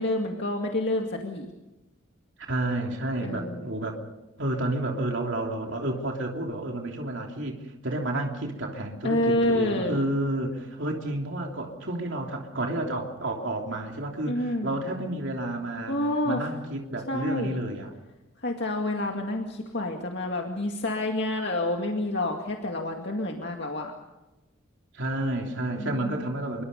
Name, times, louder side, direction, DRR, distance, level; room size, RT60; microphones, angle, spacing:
voice 1, 0.0-1.5 3.2-3.7 9.0-10.0 14.2-14.8 15.9-16.5 17.1-17.6 18.4-23.9 25.8-26.3, left 1 dB, 55° left, 2 dB, 2.2 m, -28 dB
voice 2, 2.5-4.0 4.4-16.0 16.2-17.9 24.9-26.6, right 1 dB, 65° right, 1 dB, 3.1 m, -30 dB
26.0 x 23.5 x 5.4 m, 1.0 s
head